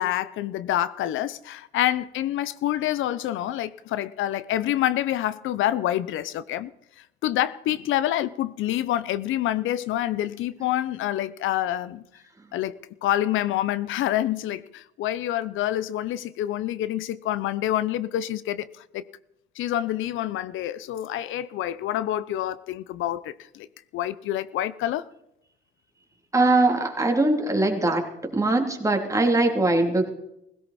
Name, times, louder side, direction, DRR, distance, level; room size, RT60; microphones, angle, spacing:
voice 1, 0.0-6.7 7.2-12.0 12.5-18.7 18.9-19.0 19.6-23.7 23.9-25.0, left 13 dB, 80° left, 0.6 m, -27 dB
voice 2, 26.3-28.0 28.3-30.1, right 2 dB, 15° right, 2.9 m, -21 dB
17.0 x 16.5 x 4.2 m
cardioid pair, 90°, 20 cm